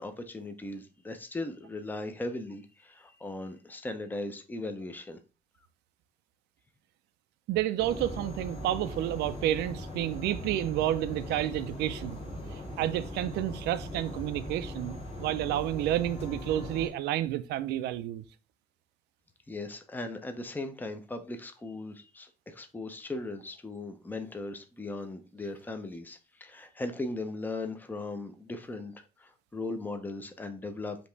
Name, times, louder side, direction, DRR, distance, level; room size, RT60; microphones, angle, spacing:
voice 1, 0.0-5.2 19.5-28.9 29.2-31.0, left 2 dB, 10° left, 0.6 m, -38 dB
voice 2, 7.5-12.2 12.5-18.2, right 13 dB, 80° right, 0.5 m, -30 dB
sound 1, 7.8-16.9, left 1 dB, 35° left, 1.8 m, -40 dB
5.2 x 2.9 x 3.3 m
cardioid pair, 110°, 17 cm